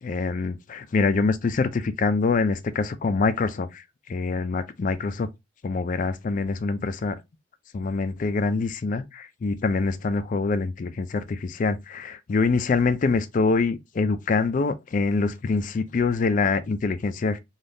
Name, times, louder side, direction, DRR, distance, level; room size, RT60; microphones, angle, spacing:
voice 1, 0.0-3.8 4.1-5.3 5.6-7.2 7.7-17.4, left 4 dB, 40° left, 0.3 m, -25 dB
3.4 x 2.3 x 2.6 m
head